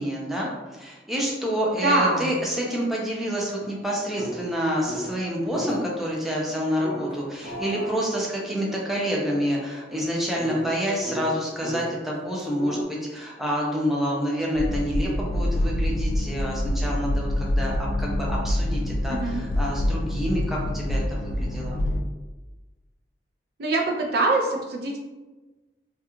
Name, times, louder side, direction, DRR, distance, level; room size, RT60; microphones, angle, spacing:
voice 1, 0.0-21.8, equal, ahead, -4 dB, 0.4 m, -28 dB
voice 2, 1.8-2.3 19.1-19.4 23.6-25.0, right 2 dB, 60° right, 0 dB, 0.4 m, -23 dB
sound 1, 3.1-5.2 5.5-5.8 6.8-11.9 12.4-12.8, equal, 35° right, 0.8 m, -37 dB
sound 2, 14.5-22.0, left 1 dB, 70° left, 0.3 m, -26 dB
2.3 x 2.2 x 2.9 m, 1.2 s
head